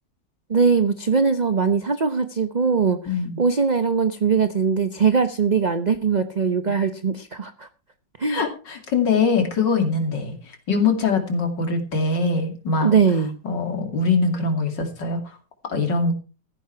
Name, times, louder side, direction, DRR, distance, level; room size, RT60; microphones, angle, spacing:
voice 1, 0.5-7.7 8.2-8.4 12.8-13.3, right 5 dB, 40° right, 10 dB, 0.6 m, -21 dB
voice 2, 8.3-10.3 10.7-12.9 13.4-15.4 15.7-16.1, left 4 dB, 75° left, 5 dB, 3.1 m, -22 dB
14.5 x 10.0 x 4.6 m, 0.34 s
omnidirectional pair, 1.9 m